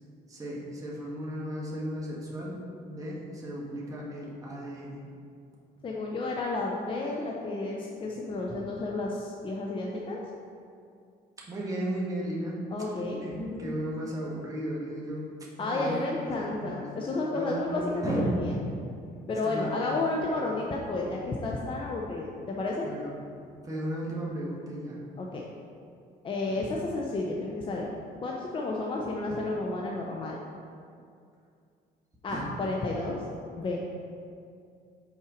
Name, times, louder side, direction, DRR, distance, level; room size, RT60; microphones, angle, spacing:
voice 1, 0.3-4.9 11.5-12.6 13.2-15.3 15.6-16.9 17.3-18.6 19.4-20.0 22.8-23.2 23.6-25.0 26.5-26.7 32.3-32.4, right 1 dB, 20° right, -5 dB, 1.4 m, -35 dB
voice 2, 5.8-10.2 12.7-13.7 15.6-18.6 19.3-22.9 25.2-25.5 26.2-27.9 28.2-30.4 32.2-33.2 33.6-33.8, left 2 dB, 30° left, -1 dB, 0.6 m, -31 dB
5.7 x 4.4 x 5.0 m, 2.4 s
cardioid pair, 110°, 17 cm